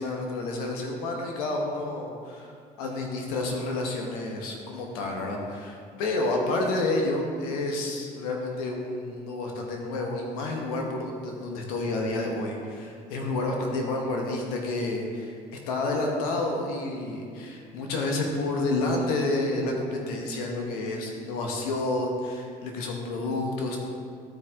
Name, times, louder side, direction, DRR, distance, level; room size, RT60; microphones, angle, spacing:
voice 1, 0.0-2.5 2.8-15.3 15.7-23.8, left 2 dB, 85° left, 1 dB, 1.2 m, -29 dB
13.0 x 4.8 x 3.7 m, 2.3 s
hypercardioid pair, 65°, 18 cm